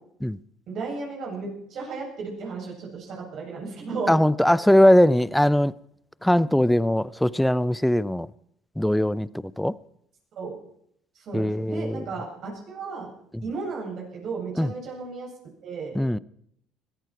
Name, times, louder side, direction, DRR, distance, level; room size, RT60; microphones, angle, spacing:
voice 1, 0.7-4.1 10.4-10.6 11.1-13.1 13.4-15.3 15.6-16.0, right 4 dB, 60° right, 7.9 m, -34 dB
voice 2, 4.1-5.7 6.2-8.3 8.8-9.3 9.6-9.7 11.3-12.0 13.3-13.4 14.6-14.7 15.9-16.2, left 1 dB, 5° left, 0.6 m, -20 dB
20.5 x 14.0 x 4.6 m
supercardioid pair, 80°, 0 cm